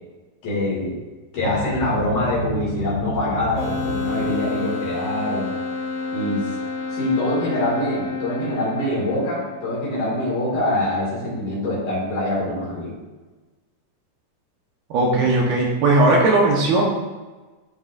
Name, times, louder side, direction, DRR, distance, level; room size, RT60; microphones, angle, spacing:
voice 1, 0.4-1.0 1.3-5.5 6.1-6.5 6.9-12.9, left 1 dB, 50° left, -6 dB, 3.4 m, -24 dB
sound 1, 1.4-4.8, left 2 dB, 50° right, 3.5 m, -32 dB
sound 2, 3.6-10.0, left 3 dB, 75° left, 1.3 m, -29 dB
voice 2, 14.9-16.8, right 2 dB, 70° right, -2 dB, 2.7 m, -17 dB
12.5 x 5.4 x 2.5 m, 1.2 s
omnidirectional pair, 4.8 m